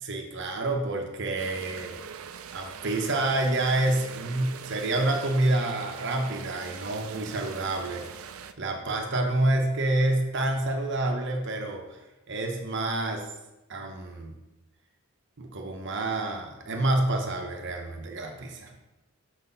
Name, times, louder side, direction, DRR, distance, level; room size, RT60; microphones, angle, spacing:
voice 1, 0.0-2.0 2.5-8.1 8.6-12.0 12.3-13.2 13.7-14.3 15.4-18.7, right 2 dB, 50° right, 2 dB, 0.8 m, -28 dB
sound 1, 1.4-8.5, right 7 dB, 70° right, 0.4 m, -42 dB
6.2 x 4.1 x 5.5 m, 0.99 s
head